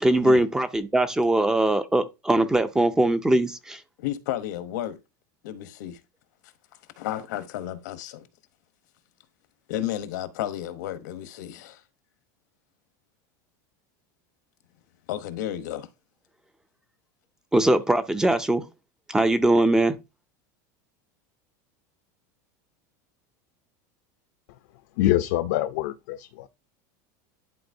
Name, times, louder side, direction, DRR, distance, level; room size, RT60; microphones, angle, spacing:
voice 1, 0.0-3.8 17.5-18.6 19.1-19.9, right 1 dB, 5° right, 0.3 m, -21 dB
voice 2, 4.0-5.0 5.4-6.0 7.0-8.3 9.7-11.8 15.1-15.9, left 12 dB, 85° left, 0.9 m, -32 dB
voice 3, 25.0-26.5, left 14 dB, 65° left, 0.4 m, -25 dB
10.5 x 3.9 x 2.6 m
supercardioid pair, 170°, 10 cm